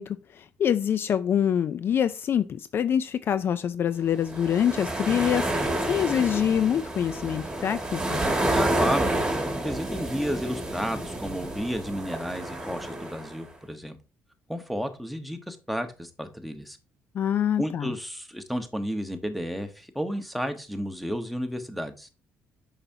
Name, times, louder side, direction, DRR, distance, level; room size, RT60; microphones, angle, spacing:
voice 1, 0.0-5.5 5.8-8.2 17.1-17.9, left 9 dB, 50° left, 0.4 m, -25 dB
sound 1, 4.2-13.4, right 1 dB, 15° right, 1.8 m, -29 dB
voice 2, 8.5-9.1 9.6-14.0 14.5-16.8 17.6-22.1, equal, ahead, 1.1 m, -32 dB
6.7 x 5.7 x 2.7 m
cardioid pair, 105°, 5 cm